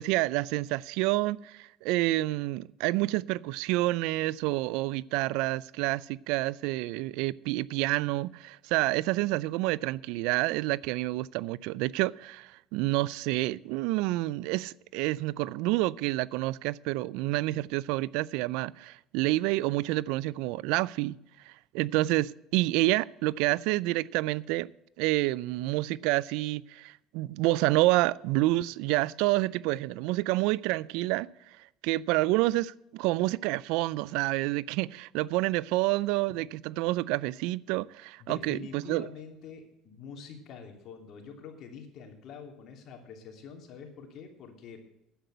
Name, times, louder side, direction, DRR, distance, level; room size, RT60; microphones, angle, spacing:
voice 1, 0.0-21.2 21.5-24.7 25.0-31.3 31.6-39.1, right 19 dB, 80° right, 0.4 m, -28 dB
voice 2, 38.2-44.8, left 6 dB, 55° left, 2.9 m, -46 dB
10.0 x 8.5 x 8.0 m
supercardioid pair, 100°, 0 cm